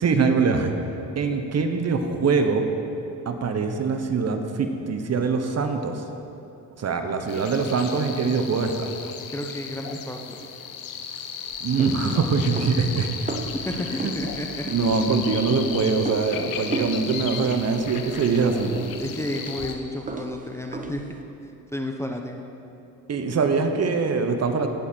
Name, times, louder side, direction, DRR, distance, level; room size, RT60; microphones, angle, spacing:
voice 1, 0.0-0.7 1.1-2.7 3.3-6.0 6.8-8.9 11.6-13.1 14.0-14.1 14.7-18.8 23.1-24.7, right 4 dB, 40° right, 6 dB, 1.1 m, -23 dB
sound 1, 7.3-19.7, left 7 dB, 60° left, 1.2 m, -35 dB
voice 2, 9.3-10.4 13.7-14.6 15.4-15.6 19.0-21.0 21.7-22.4, left 1 dB, 5° left, 2 dB, 0.9 m, -32 dB
sound 2, 11.5-21.2, right 3 dB, 20° right, 0.9 m, -36 dB
17.5 x 7.1 x 4.5 m, 2.8 s
supercardioid pair, 85°, 39 cm